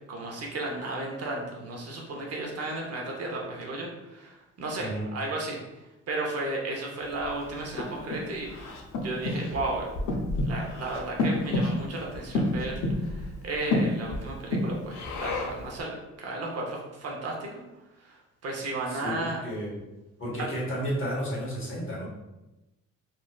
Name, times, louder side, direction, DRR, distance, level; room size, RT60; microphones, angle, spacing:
voice 1, 0.1-5.6 6.1-9.9 10.5-17.5 18.0-19.4 20.4-20.5, right 2 dB, 55° right, -1 dB, 0.8 m, -34 dB
Breathing, 7.2-15.7, left 2 dB, 75° left, 0.6 m, -30 dB
voice 2, 18.9-19.8 20.2-22.1, equal, 45° left, -5 dB, 1.4 m, -32 dB
3.2 x 2.7 x 2.3 m, 1.0 s
cardioid pair, 90°, 30 cm